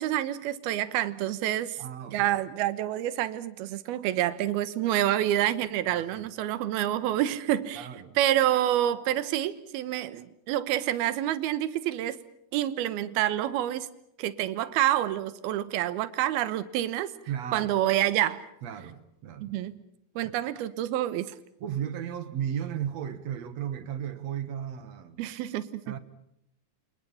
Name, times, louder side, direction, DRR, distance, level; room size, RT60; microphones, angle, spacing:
voice 1, 0.0-1.8 2.1-7.9 8.2-12.2 12.5-13.9 14.2-17.1 17.5-18.5 19.4-19.7 20.2-21.3 25.2-25.9, right 13 dB, 75° right, 3.0 m, -28 dB
voice 2, 1.8-2.3 4.9-5.1 5.9-6.3 7.8-8.2 17.3-17.7 18.6-19.5 21.6-25.2 25.9-26.0, right 9 dB, 55° right, 2.1 m, -35 dB
29.5 x 27.0 x 5.8 m
omnidirectional pair, 4.5 m